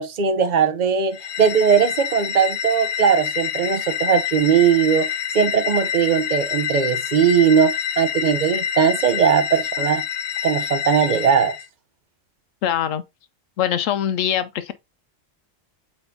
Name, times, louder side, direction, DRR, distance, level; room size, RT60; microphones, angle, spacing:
voice 1, 0.0-10.0 10.4-11.5, right 7 dB, 40° right, 0.8 m, -19 dB
sound 1, 1.1-11.6, left 8 dB, 70° left, 0.9 m, -27 dB
voice 2, 12.6-13.0 13.6-14.7, left 10 dB, 90° left, 1.1 m, -22 dB
8.0 x 4.4 x 2.7 m
omnidirectional pair, 1.3 m